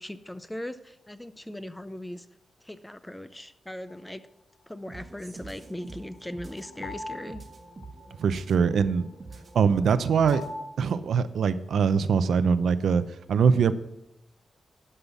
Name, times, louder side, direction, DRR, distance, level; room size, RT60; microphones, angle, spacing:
voice 1, 0.0-2.3 2.6-4.2 4.7-7.4, left 1 dB, 10° left, 12 dB, 0.5 m, -39 dB
sound 1, 3.9-4.0 5.8-10.6, left 3 dB, 70° left, 1.4 m, -43 dB
sound 2, 4.8-10.6, right 3 dB, 35° right, 1.3 m, -46 dB
voice 2, 8.2-9.1 9.5-10.4 10.8-13.0 13.3-13.7, right 6 dB, 85° right, 13 dB, 0.6 m, -22 dB
12.0 x 5.6 x 7.1 m, 0.89 s
wide cardioid pair, 115°, 0 cm